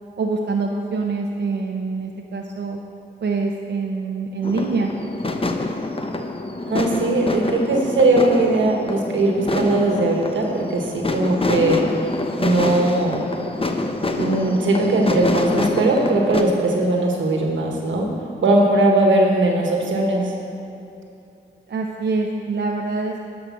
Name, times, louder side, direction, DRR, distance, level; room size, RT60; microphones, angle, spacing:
voice 1, 0.2-2.8 3.2-4.9 21.7-23.3, right 4 dB, 65° right, 0 dB, 0.7 m, -25 dB
sound 1, 4.4-16.4, left 2 dB, 30° left, 0.8 m, -26 dB
voice 2, 6.7-11.9 12.4-13.2 14.1-18.1 18.4-20.3, right 2 dB, 85° right, 0 dB, 1.4 m, -19 dB
11.5 x 5.2 x 6.2 m, 2.7 s
cardioid pair, 45°, 19 cm